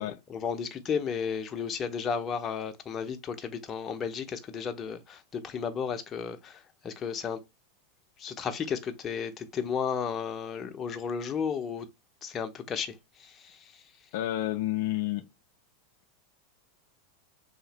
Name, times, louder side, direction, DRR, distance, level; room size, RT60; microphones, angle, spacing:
voice 1, 0.0-7.4 8.2-11.9 12.2-13.8, left 6 dB, 30° left, 0.7 m, -33 dB
voice 2, 14.1-15.3, left 14 dB, 65° left, 0.3 m, -30 dB
3.1 x 2.9 x 2.9 m
hypercardioid pair, 105°, 0 cm